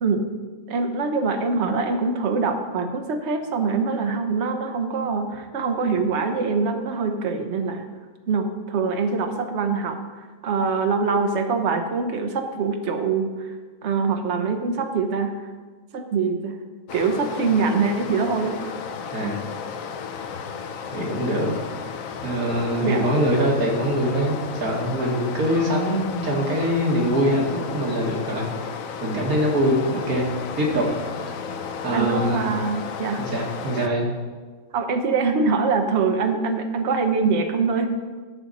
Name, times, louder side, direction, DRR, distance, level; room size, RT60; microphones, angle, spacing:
voice 1, 0.0-0.3 0.7-7.8 8.3-10.0 10.4-13.5 13.8-15.3 15.9-16.5 16.9-18.8 22.8-23.1 31.9-33.3 34.7-38.0, right 4 dB, 55° right, 5 dB, 1.1 m, -24 dB
Stream, 16.9-33.9, left 6 dB, 70° left, 1.0 m, -33 dB
voice 2, 20.9-21.6 22.2-28.7 29.0-30.2 30.6-30.9 31.8-32.4 33.2-34.1, equal, 80° right, -2 dB, 2.3 m, -23 dB
12.5 x 6.3 x 4.1 m, 1.4 s
omnidirectional pair, 1.5 m